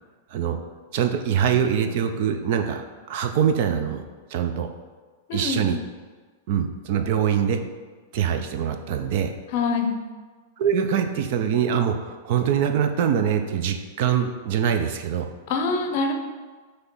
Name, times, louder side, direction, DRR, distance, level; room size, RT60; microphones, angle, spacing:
voice 1, 0.9-4.0 4.3-4.7 5.3-5.8 6.5-7.6 8.1-9.3 10.6-15.3, right 8 dB, 45° right, 7 dB, 0.5 m, -23 dB
voice 2, 5.3-5.7 9.5-10.0 15.5-16.1, left 4 dB, 45° left, 5 dB, 0.7 m, -24 dB
6.1 x 3.3 x 5.4 m, 1.4 s
supercardioid pair, 165°, 0 cm